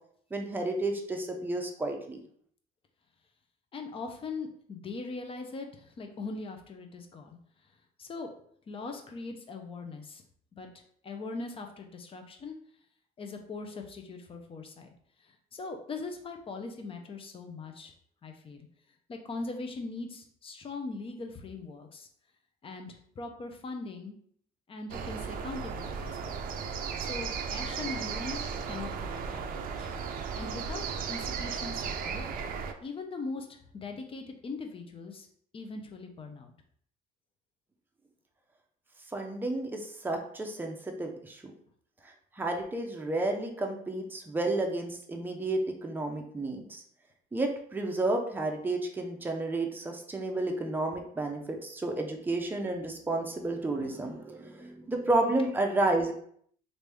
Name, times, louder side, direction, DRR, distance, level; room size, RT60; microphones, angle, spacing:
voice 1, 0.3-2.2 39.1-41.4 42.0-46.8 47.3-56.1, right 2 dB, 10° right, 2 dB, 0.6 m, -31 dB
voice 2, 3.7-7.4 8.0-8.3 8.7-10.2 10.6-10.7 11.0-12.6 13.2-14.9 15.2-17.9 18.2-18.7 19.1-22.1 22.6-24.1 24.7-26.4 27.0-28.4 28.7-29.9 30.3-32.2 32.8-35.3 35.5-36.5, left 3 dB, 35° left, 4 dB, 0.6 m, -40 dB
sound 1, 24.9-32.7, right 6 dB, 55° right, 0.4 m, -35 dB
3.1 x 2.6 x 3.3 m, 0.62 s
cardioid pair, 110°, 17 cm